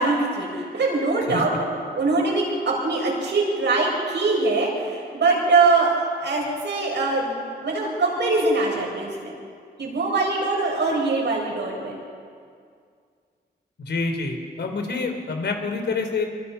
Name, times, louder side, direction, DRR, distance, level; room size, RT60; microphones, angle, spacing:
voice 1, 0.0-1.6 1.9-5.9 6.2-7.4 7.6-9.3 9.8-12.0, right 3 dB, 85° right, -2 dB, 7.7 m, -22 dB
voice 2, 13.8-16.3, left 4 dB, 80° left, 4 dB, 3.9 m, -27 dB
27.5 x 25.0 x 5.9 m, 2.2 s
wide cardioid pair, 160°, 18 cm